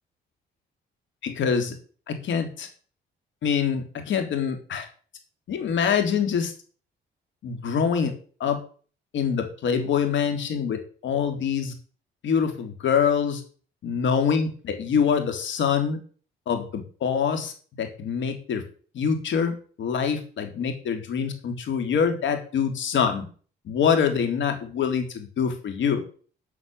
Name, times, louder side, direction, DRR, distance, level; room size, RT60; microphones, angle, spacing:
voice 1, 1.2-1.8 2.1-2.7 3.4-4.9 5.5-6.5 7.4-8.1 8.4-8.6 9.1-11.7 12.2-13.4 13.8-16.0 16.5-18.6 18.9-23.3 23.6-26.0, left 7 dB, 70° left, 6 dB, 3.6 m, -25 dB
12.0 x 6.2 x 9.4 m, 0.41 s
cardioid pair, 90°, 20 cm